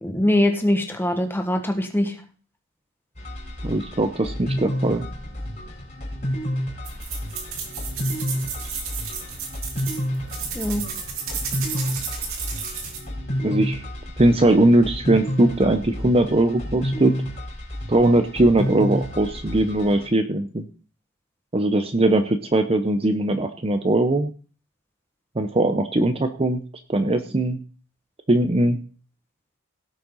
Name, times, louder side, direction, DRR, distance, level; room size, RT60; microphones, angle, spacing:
voice 1, 0.0-2.1 10.5-10.9, left 1 dB, 10° left, 4 dB, 1.7 m, -22 dB
sound 1, 3.2-20.1, equal, 35° left, 4.3 m, -30 dB
voice 2, 3.6-5.1 13.4-13.8 14.2-17.2 17.9-20.7 21.5-24.3 25.4-26.6 26.9-27.6 28.3-28.8, right 1 dB, 25° right, 8 dB, 0.8 m, -20 dB
sound 2, 6.8-13.0, right 6 dB, 65° right, 3.4 m, -33 dB
17.0 x 6.6 x 4.0 m, 0.38 s
head